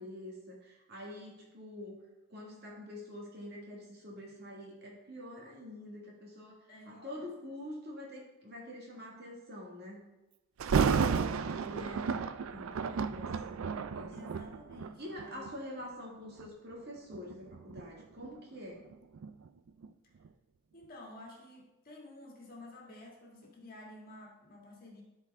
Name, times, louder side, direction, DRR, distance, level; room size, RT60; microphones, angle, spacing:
voice 1, 0.0-2.0 2.3-6.6 6.9-10.1 11.4-12.2 12.5-14.3 15.0-18.8, left 1 dB, 50° right, -2 dB, 1.9 m, -46 dB
voice 2, 6.7-7.3 11.7-12.2 14.1-15.6 20.7-25.0, left 2 dB, 40° left, -2 dB, 1.7 m, -52 dB
Thunder, 10.6-15.6 16.2-16.5 17.1-19.9 20.2-20.3, right 6 dB, 70° right, 0.4 m, -33 dB
12.5 x 4.7 x 3.5 m, 0.99 s
head